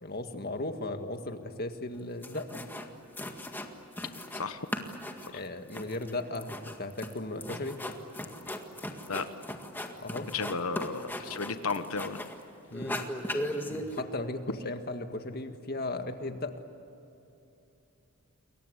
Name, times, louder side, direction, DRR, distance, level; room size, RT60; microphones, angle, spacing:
voice 1, 0.0-2.5 5.3-7.8 10.0-10.3 12.7-13.0 13.5-16.5, left 2 dB, 45° left, 6 dB, 1.9 m, -36 dB
sound 1, 1.9-2.0 2.2-2.9 3.2-4.5 4.7-12.4 12.7-14.0, left 1 dB, 10° left, 1.8 m, -38 dB
voice 2, 4.3-4.7 5.3-5.4 9.1-9.3 10.3-12.2, left 4 dB, 75° left, 10 dB, 1.2 m, -33 dB
28.5 x 23.0 x 8.2 m, 2.9 s
head